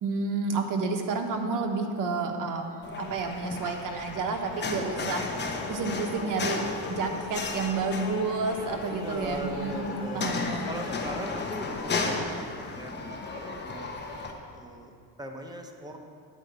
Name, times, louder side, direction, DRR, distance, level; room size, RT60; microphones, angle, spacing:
voice 1, 0.0-5.3 5.7-10.7, right 4 dB, 55° right, 3 dB, 1.2 m, -30 dB
sound 1, 2.8-14.3, left 3 dB, 30° left, 1.0 m, -35 dB
sound 2, 4.6-11.8, left 5 dB, 70° left, 1.4 m, -41 dB
voice 2, 8.9-10.3 10.6-14.1 14.5-16.1, right 1 dB, 10° right, 2 dB, 0.9 m, -39 dB
9.9 x 4.8 x 7.9 m, 2.3 s
cardioid pair, 135°, 38 cm